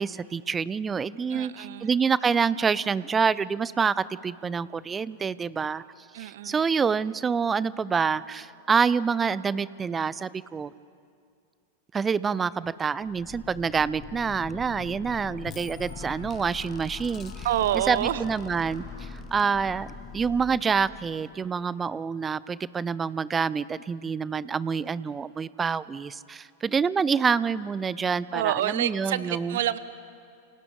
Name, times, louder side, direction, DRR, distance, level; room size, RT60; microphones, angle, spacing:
voice 1, 0.0-5.8 6.2-10.7 11.9-17.5 17.7-19.9 20.1-29.6, right 6 dB, 20° right, 19 dB, 0.5 m, -27 dB
voice 2, 1.3-2.0 6.1-6.6 17.4-18.2 28.3-29.8, right 12 dB, 55° right, 16 dB, 0.9 m, -28 dB
sound 1, 13.0-21.5, left 6 dB, 30° left, 0.9 m, -42 dB
Screaming, 15.6-19.4, equal, 80° left, 7.4 m, -51 dB
29.0 x 28.5 x 3.9 m, 2.3 s
figure-of-eight pair, 90°, 0 cm